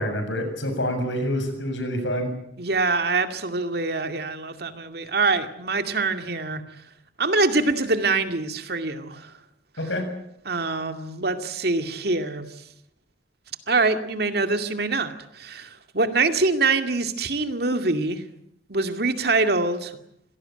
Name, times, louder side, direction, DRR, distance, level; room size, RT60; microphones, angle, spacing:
voice 1, 0.0-2.3 9.8-10.1, equal, 85° left, 7 dB, 7.2 m, -27 dB
voice 2, 2.6-6.6 7.2-9.3 10.5-12.5 13.7-18.2 18.7-20.0, right 3 dB, 60° right, 7 dB, 2.3 m, -24 dB
26.5 x 17.5 x 9.0 m, 0.74 s
head